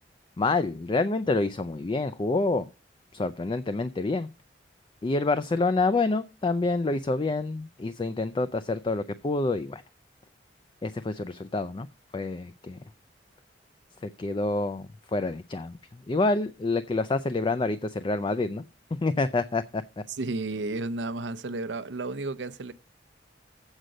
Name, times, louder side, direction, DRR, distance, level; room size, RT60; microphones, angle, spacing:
voice 1, 0.4-2.7 3.1-4.3 5.0-9.8 10.8-11.9 12.1-12.8 14.0-15.8 16.1-18.6 19.0-19.8, left 3 dB, 25° left, 0.4 m, -27 dB
voice 2, 20.1-22.7, right 2 dB, 80° right, 0.6 m, -32 dB
8.1 x 5.1 x 7.5 m
head